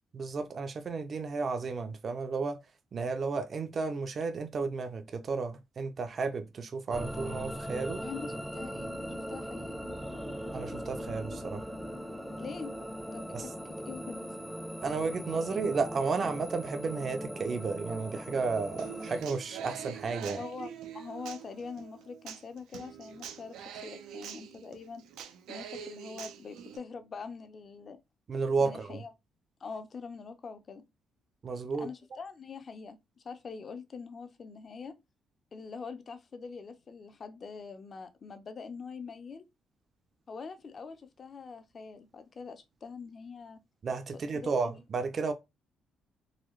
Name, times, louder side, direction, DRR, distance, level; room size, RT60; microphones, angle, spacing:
voice 1, 0.1-2.6 2.9-8.0 10.5-11.6 13.3-13.5 14.8-20.4 28.3-29.0 31.4-31.9 43.8-45.3, right 4 dB, 45° right, 0.6 m, -33 dB
sound 1, 6.9-19.2, equal, 5° right, 0.7 m, -39 dB
voice 2, 8.0-9.8 12.4-12.8 13.1-14.4 20.4-25.0 25.5-28.0 28.6-29.1 29.6-30.8 31.8-33.0 33.2-35.0 35.5-39.4 40.3-43.6 44.3-44.7, left 5 dB, 45° left, 0.7 m, -44 dB
Human voice / Acoustic guitar, 18.8-26.8, right 9 dB, 90° right, 0.6 m, -44 dB
4.0 x 2.4 x 3.1 m
cardioid pair, 90°, 0 cm